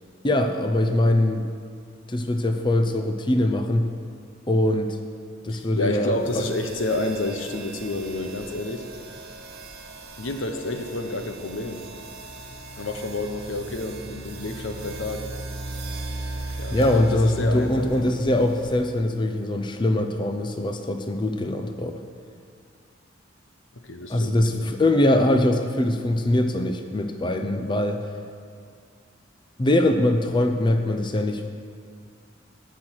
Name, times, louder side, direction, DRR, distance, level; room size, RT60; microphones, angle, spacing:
voice 1, 0.2-1.5 2.1-3.9 4.5-5.0 5.4-6.5 16.7-21.9 24.1-28.0 29.6-31.5, left 1 dB, 25° left, 6 dB, 0.6 m, -22 dB
voice 2, 5.5-8.9 10.2-11.8 12.8-15.3 16.6-18.0 23.8-24.7, left 2 dB, 80° left, 6 dB, 1.0 m, -30 dB
sound 1, 6.2-19.0, right 2 dB, 55° right, 1.4 m, -38 dB
14.5 x 6.2 x 6.3 m, 2.1 s
head